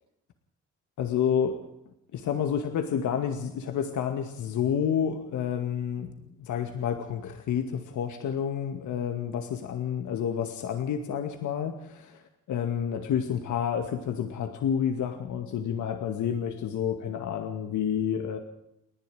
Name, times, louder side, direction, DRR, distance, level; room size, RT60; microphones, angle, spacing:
voice 1, 1.0-1.6 2.1-6.1 6.4-12.2 12.5-18.4, left 8 dB, 75° left, 6 dB, 2.2 m, -29 dB
30.0 x 11.0 x 9.3 m, 0.82 s
cardioid pair, 90°, 30 cm